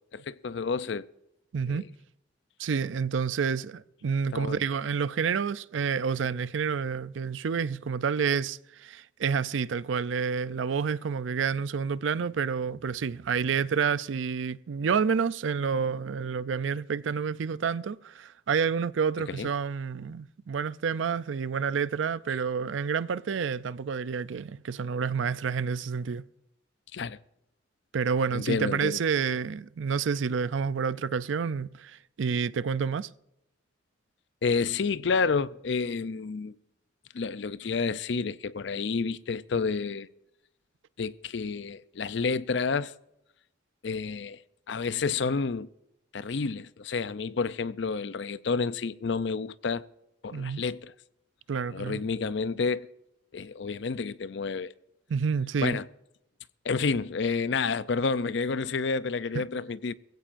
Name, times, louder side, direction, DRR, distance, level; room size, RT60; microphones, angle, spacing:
voice 1, 0.1-1.1 1.7-1.8 4.3-4.6 19.3-19.5 26.9-27.2 28.3-29.0 34.4-36.5 37.1-40.1 41.0-42.9 43.8-44.4 44.7-45.7 46.1-49.9 50.2-50.9 51.7-52.9 53.3-54.7 55.6-55.9 56.6-59.9, left 4 dB, 65° left, 0.5 m, -30 dB
voice 2, 1.5-1.8 2.6-26.3 27.9-33.1 50.3-50.6 51.5-52.0 55.1-55.8 59.3-59.4, right 6 dB, 75° right, 0.4 m, -29 dB
21.0 x 16.0 x 2.6 m
head